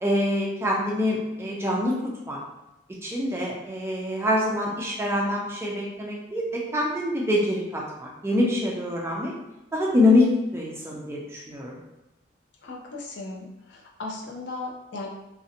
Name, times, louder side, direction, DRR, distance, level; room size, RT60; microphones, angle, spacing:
voice 1, 0.0-2.0 2.3-2.4 3.0-9.3 9.7-11.8, left 1 dB, 15° right, -3 dB, 0.4 m, -25 dB
voice 2, 12.6-15.1, left 2 dB, 75° left, -1 dB, 0.5 m, -37 dB
2.6 x 2.1 x 2.6 m, 0.99 s
head